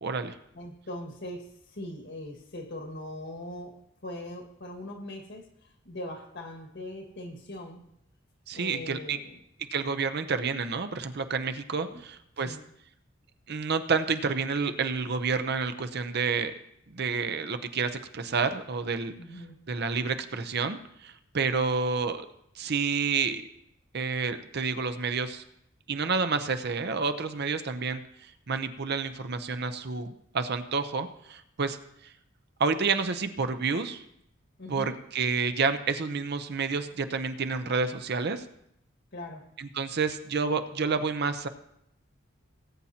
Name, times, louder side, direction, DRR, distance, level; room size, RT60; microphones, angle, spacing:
voice 1, 0.0-0.4 8.5-9.2 9.7-12.6 13.5-16.5 16.9-19.1 19.7-22.3 22.6-23.4 23.9-25.4 25.9-28.0 28.5-31.8 32.6-34.0 34.7-38.4 39.6-41.5, right 5 dB, 55° right, 10 dB, 0.7 m, -29 dB
voice 2, 0.5-3.7 4.0-5.4 5.9-7.8 8.5-9.4 11.9-12.0 12.4-12.6 19.2-19.6 34.6-34.9 39.1-39.5, left 1 dB, 60° left, 3 dB, 1.8 m, -40 dB
18.5 x 8.7 x 2.9 m, 0.76 s
head